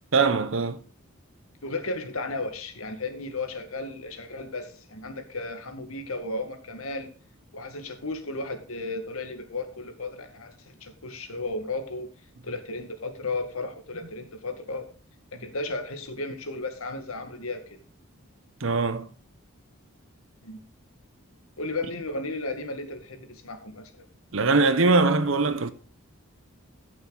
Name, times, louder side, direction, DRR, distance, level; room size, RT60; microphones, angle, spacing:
voice 1, 0.1-0.8 18.6-19.1 24.3-25.7, right 3 dB, 60° right, 0.9 m, -22 dB
voice 2, 1.6-7.1 7.5-12.1 12.4-14.9 15.3-17.8 20.4-20.6 21.6-24.0, left 2 dB, 75° left, 1.8 m, -34 dB
14.0 x 6.7 x 4.0 m
head